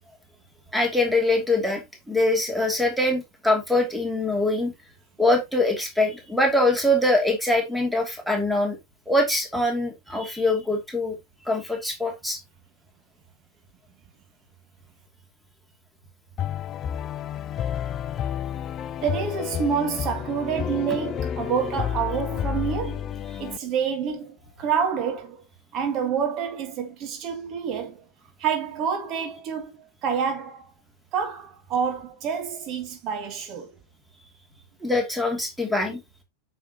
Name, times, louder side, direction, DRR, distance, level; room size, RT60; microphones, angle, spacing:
voice 1, 0.7-4.7 5.2-8.8 9.1-11.1 11.5-12.4 34.8-36.0, left 1 dB, ahead, 2.6 m, -23 dB
sound 1, 16.4-23.6, left 9 dB, 30° left, 0.5 m, -30 dB
voice 2, 19.0-23.1 23.4-25.4 25.7-28.0 28.4-30.7 31.1-33.7, right 7 dB, 35° right, 1.8 m, -28 dB
8.9 x 6.2 x 2.9 m
figure-of-eight pair, 90°, 0 cm